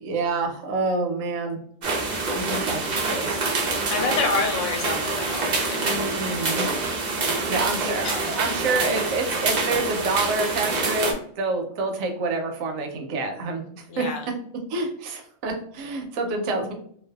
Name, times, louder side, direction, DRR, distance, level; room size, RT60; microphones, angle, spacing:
voice 1, 0.0-1.6 2.3-3.5 5.8-6.7 7.5-14.0 14.7-16.7, right 3 dB, 80° right, 3 dB, 1.0 m, -28 dB
sound 1, 1.8-11.1, right 3 dB, 60° right, 0.4 m, -26 dB
voice 2, 3.9-5.8 8.0-8.2 13.9-14.3, left 4 dB, 70° left, 3 dB, 0.9 m, -27 dB
2.5 x 2.2 x 2.2 m, 0.64 s
omnidirectional pair, 1.4 m